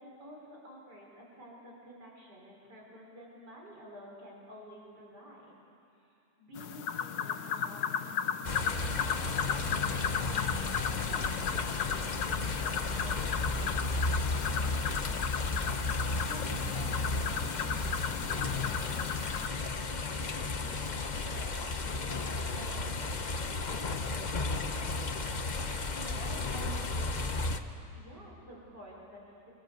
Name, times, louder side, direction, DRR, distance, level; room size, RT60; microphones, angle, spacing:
voice 1, 0.0-5.5 6.0-15.3 15.9-25.2 25.6-29.5, right 1 dB, 70° right, -3 dB, 5.5 m, -50 dB
sound 1, 6.6-19.5, left 7 dB, 65° left, 1.4 m, -35 dB
sound 2, 8.4-27.6, left 3 dB, 35° left, 0.8 m, -33 dB
28.0 x 24.0 x 8.0 m, 2.6 s
omnidirectional pair, 1.8 m